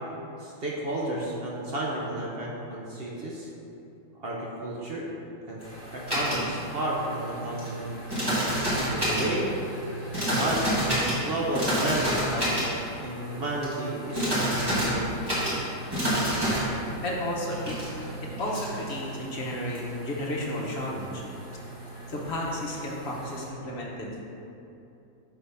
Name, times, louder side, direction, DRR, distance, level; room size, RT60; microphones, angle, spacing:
voice 1, 0.4-3.5 4.2-5.1 5.5-5.6 5.9-7.9 8.9-9.5 10.1-12.5 13.0-15.1, right 1 dB, 55° right, -3 dB, 0.8 m, -32 dB
sound 1, 5.6-23.5, equal, 20° right, 1.6 m, -30 dB
voice 2, 17.0-17.8 18.2-21.2 22.1-24.1, left 1 dB, 55° left, -3 dB, 1.0 m, -32 dB
5.7 x 3.4 x 5.3 m, 2.8 s
omnidirectional pair, 1.4 m